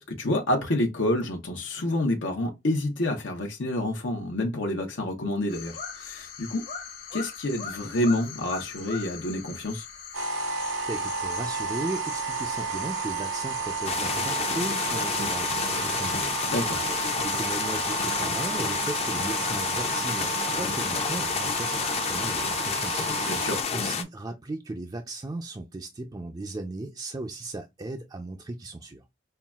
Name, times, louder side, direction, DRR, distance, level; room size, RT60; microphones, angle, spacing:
voice 1, 0.1-6.6 7.1-9.9 16.5-16.8 23.3-23.6, left 1 dB, 85° left, 0.9 m, -28 dB
sound 1, 5.5-22.3, left 7 dB, 60° left, 1.1 m, -42 dB
sound 2, 10.1-23.6, right 5 dB, 85° right, 0.8 m, -32 dB
voice 2, 10.8-16.3 17.2-21.8 22.1-29.0, right 2 dB, 20° right, 0.4 m, -36 dB
sound 3, 13.8-24.0, left 6 dB, 35° left, 0.5 m, -29 dB
5.6 x 2.3 x 2.3 m
head